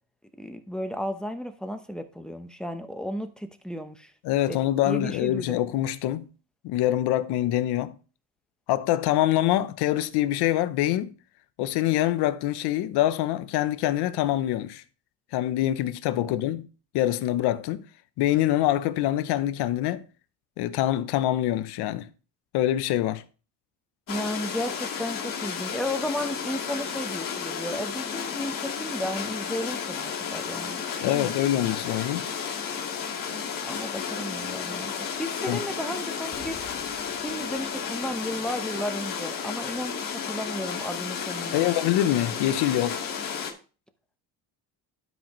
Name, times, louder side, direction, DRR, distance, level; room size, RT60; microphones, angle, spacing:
voice 1, 0.4-4.1 4.5-5.6 24.1-31.3 33.6-34.9 35.2-36.8 37.2-41.6, equal, ahead, 0.9 m, -34 dB
voice 2, 4.2-6.3 6.6-8.0 8.7-11.1 11.6-14.8 15.3-16.7 16.9-17.8 18.2-20.0 20.6-22.1 22.5-23.2 31.0-32.3 35.5-35.6 41.5-43.0, left 13 dB, 80° left, 0.8 m, -25 dB
sound 1, 24.1-43.5, left 7 dB, 55° left, 2.0 m, -33 dB
Explosion, 36.3-38.9 39.3-39.4, left 6 dB, 30° left, 1.5 m, -51 dB
12.0 x 5.1 x 3.1 m
cardioid pair, 125°, 39 cm